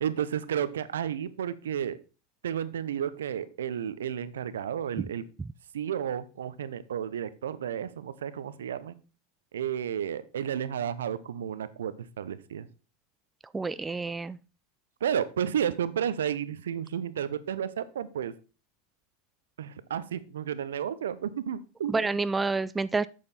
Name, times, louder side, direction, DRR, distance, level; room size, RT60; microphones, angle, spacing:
voice 1, 0.0-2.0 2.4-5.2 5.7-8.9 9.5-12.7 15.0-18.3 19.6-22.2, right 9 dB, 80° right, 0.7 m, -32 dB
voice 2, 13.5-14.4 21.9-23.1, right 3 dB, 15° right, 0.4 m, -28 dB
8.7 x 6.8 x 4.1 m
hypercardioid pair, 90°, 0 cm